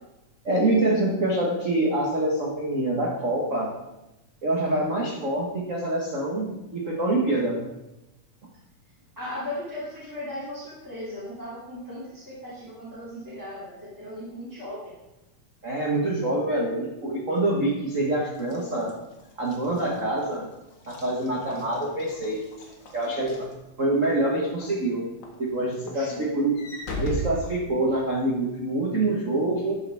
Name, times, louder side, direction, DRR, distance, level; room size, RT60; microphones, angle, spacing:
voice 1, 0.4-3.7 4.4-7.6 15.6-18.9 19.4-20.5 20.9-22.4 22.9-23.4 23.8-25.1 25.4-26.6 27.0-29.7, right 2 dB, 55° right, -3 dB, 0.8 m, -25 dB
voice 2, 9.2-14.9 25.9-26.2, left 1 dB, 5° right, -9 dB, 2.2 m, -37 dB
Walk footsteps / Slam, 18.4-24.1 24.6-24.9 25.2-28.2, right 1 dB, 50° left, 1.5 m, -38 dB
12.5 x 6.9 x 3.5 m, 0.96 s
omnidirectional pair, 3.7 m